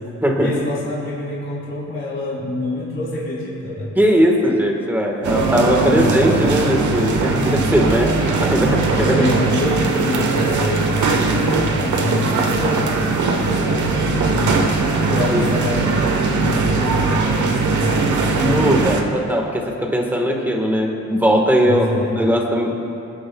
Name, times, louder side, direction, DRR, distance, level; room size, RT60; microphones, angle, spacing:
voice 1, 0.4-3.9 5.8-6.3 7.9-8.4 9.0-18.2 21.6-22.2, left 2 dB, 40° left, -7 dB, 3.2 m, -27 dB
voice 2, 3.9-8.1 8.4-9.3 15.3-15.4 18.3-22.7, equal, 5° right, 1 dB, 1.4 m, -19 dB
sound 1, 5.2-19.0, right 3 dB, 75° right, 1.2 m, -19 dB
26.0 x 9.7 x 2.3 m, 2.7 s
wide cardioid pair, 140°, 30 cm